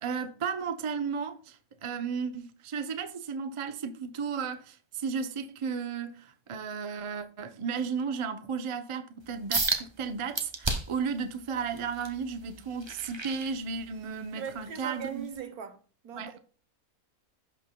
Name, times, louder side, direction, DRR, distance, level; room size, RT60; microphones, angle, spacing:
voice 1, 0.0-15.3 16.1-16.4, right 6 dB, 45° right, 0.4 m, -34 dB
sound 1, 9.5-9.8 10.3-11.0 11.5-14.1 14.6-14.8 15.4-15.5, right 3 dB, 25° right, 0.8 m, -32 dB
voice 2, 14.3-15.8 16.0-16.4, right 7 dB, 80° right, 1.4 m, -39 dB
16.0 x 5.6 x 2.2 m
omnidirectional pair, 1.6 m